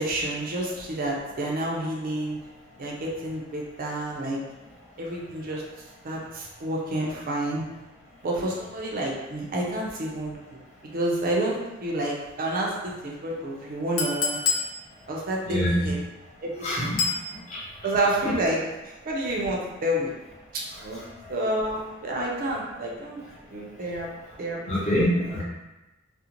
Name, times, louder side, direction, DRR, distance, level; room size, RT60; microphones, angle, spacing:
voice 1, 0.0-2.4 2.8-4.4 5.0-5.6 6.0-7.6 8.2-10.4 10.9-14.4 15.1-16.0 16.4-16.5 16.8-16.9 17.8-20.1 20.5-21.0 21.3-23.2 23.5-24.1 24.4-24.6 25.2-25.4, right 1 dB, 45° right, -2 dB, 0.4 m, -29 dB
Chink clink, 14.0-14.7 17.0-17.2, left 5 dB, 85° left, 0.5 m, -25 dB
voice 2, 15.4-15.9 16.6-16.9 17.5-17.6 24.7-25.4, equal, 35° left, -7 dB, 0.8 m, -24 dB
2.4 x 2.0 x 2.8 m, 1.0 s
head